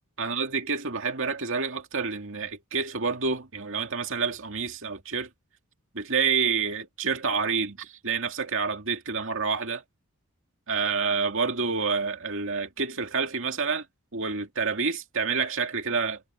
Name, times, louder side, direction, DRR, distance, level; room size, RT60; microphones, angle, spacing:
voice 1, 0.2-5.3 5.9-9.8 10.7-13.9 14.1-16.2, right 5 dB, 60° right, 2.4 m, -28 dB
head